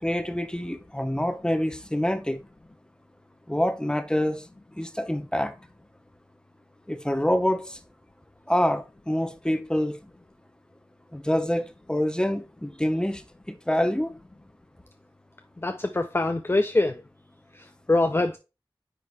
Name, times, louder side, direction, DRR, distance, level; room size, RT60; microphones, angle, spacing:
voice 1, 0.0-2.4 3.5-4.4 4.8-5.5 6.9-7.8 8.5-10.0 11.1-11.6 11.9-13.2 13.5-14.1, left 1 dB, 10° left, 0.9 m, -26 dB
voice 2, 15.6-17.0 17.5-18.4, left 2 dB, 25° left, 0.5 m, -24 dB
9.4 x 3.8 x 3.1 m
wide cardioid pair, 40°, 9 cm